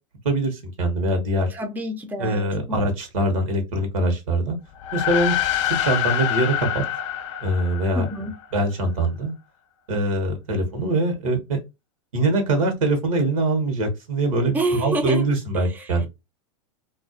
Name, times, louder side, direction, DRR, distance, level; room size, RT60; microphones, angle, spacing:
voice 1, 0.2-1.5 2.2-4.6 4.9-5.4 5.7-6.8 7.4-8.1 8.5-9.3 9.9-11.6 12.1-16.1, right 2 dB, 85° right, 1.1 m, -23 dB
voice 2, 1.5-2.5 7.9-8.3 14.5-15.2 15.5-15.9, right 2 dB, 10° right, 0.4 m, -27 dB
sound 1, 4.7-8.4, left 11 dB, 65° left, 0.5 m, -26 dB
2.4 x 2.3 x 2.4 m
hypercardioid pair, 120°, 17 cm